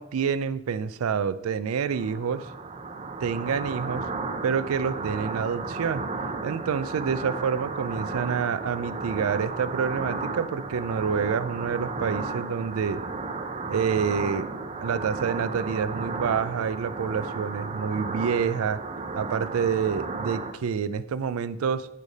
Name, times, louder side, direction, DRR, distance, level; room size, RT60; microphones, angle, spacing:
voice 1, 0.0-2.5 3.2-4.0 4.4-6.0 6.4-13.0 13.7-14.5 14.8-18.8 19.1-21.9, right 6 dB, 90° right, 15 dB, 0.4 m, -27 dB
sound 1, 1.9-20.5, right 3 dB, 30° right, 0.5 m, -34 dB
8.5 x 3.3 x 5.2 m, 0.87 s
head